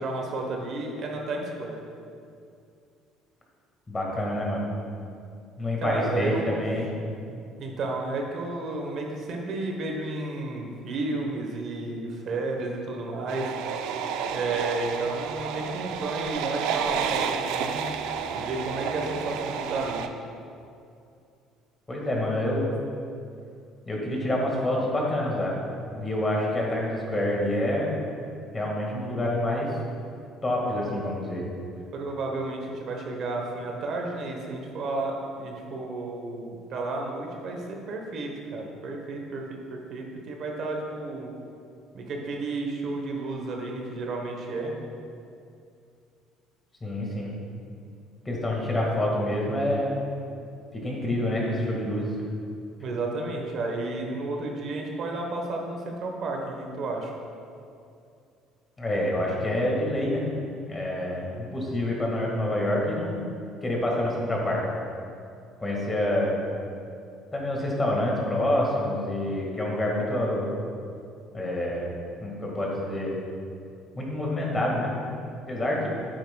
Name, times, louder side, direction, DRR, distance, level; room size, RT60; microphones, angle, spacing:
voice 1, 0.0-1.8 5.8-6.6 7.2-7.3 7.6-13.5 14.3-17.8 18.3-20.0 31.9-41.3 41.9-44.7 52.8-57.1, right 2 dB, 50° right, 1 dB, 1.0 m, -32 dB
voice 2, 3.9-4.7 5.6-6.9 21.9-22.6 23.9-25.5 25.9-27.9 28.5-29.7 30.4-31.4 46.8-47.3 48.3-49.9 50.7-52.1 58.8-60.2 60.7-63.3 63.6-64.6 65.6-66.4 67.3-70.5 71.3-71.9 72.2-73.2 74.0-74.9 75.5-75.9, left 1 dB, 20° left, -2 dB, 1.7 m, -27 dB
sound 1, 13.3-20.1, right 7 dB, 80° right, 0.4 m, -31 dB
9.0 x 8.8 x 2.3 m, 2.5 s
cardioid pair, 125°, 0 cm